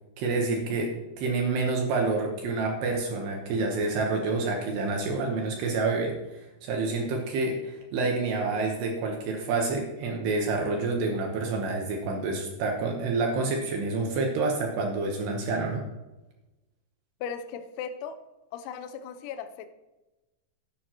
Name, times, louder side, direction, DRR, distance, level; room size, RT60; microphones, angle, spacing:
voice 1, 0.2-15.8, right 3 dB, 70° right, 1 dB, 2.8 m, -28 dB
voice 2, 17.2-18.2 18.5-19.7, left 7 dB, 80° left, 8 dB, 2.9 m, -37 dB
11.0 x 11.0 x 3.0 m, 1.0 s
omnidirectional pair, 5.8 m